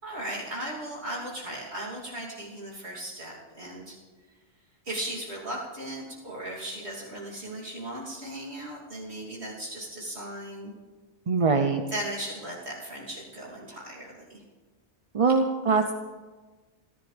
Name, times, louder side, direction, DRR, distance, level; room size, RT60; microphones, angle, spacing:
voice 1, 0.0-4.0 4.8-10.7 11.9-14.4, right 1 dB, 60° right, -6 dB, 3.4 m, -37 dB
voice 2, 11.3-11.8 15.1-15.9, right 4 dB, 35° right, 5 dB, 0.6 m, -22 dB
29.5 x 11.5 x 3.5 m, 1.3 s
omnidirectional pair, 1.2 m